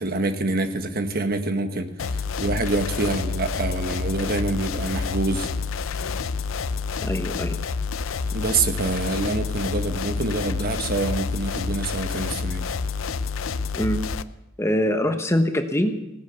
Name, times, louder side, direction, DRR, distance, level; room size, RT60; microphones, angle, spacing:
voice 1, 0.0-5.5 8.3-12.7, right 2 dB, 50° right, 7 dB, 1.3 m, -26 dB
sound 1, 2.0-14.2, left 5 dB, 85° left, 0.6 m, -28 dB
voice 2, 7.0-7.6 13.7-14.0 14.6-15.9, equal, 15° left, 7 dB, 1.0 m, -23 dB
17.5 x 10.0 x 7.0 m, 0.96 s
head